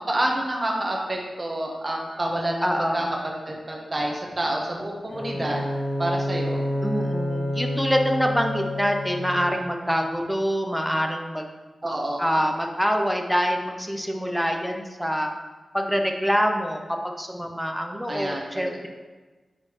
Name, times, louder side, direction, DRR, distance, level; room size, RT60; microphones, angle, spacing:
voice 1, 0.0-5.7 6.0-6.6 11.8-12.3 18.1-18.9, right 1 dB, 35° right, -1 dB, 1.2 m, -28 dB
voice 2, 2.6-3.1 6.8-11.5 12.2-15.3 15.7-18.9, equal, ahead, 3 dB, 0.7 m, -25 dB
Bowed string instrument, 5.1-9.9, left 1 dB, 55° left, 1.6 m, -29 dB
7.6 x 4.3 x 3.1 m, 1.3 s
wide cardioid pair, 75°, 0 cm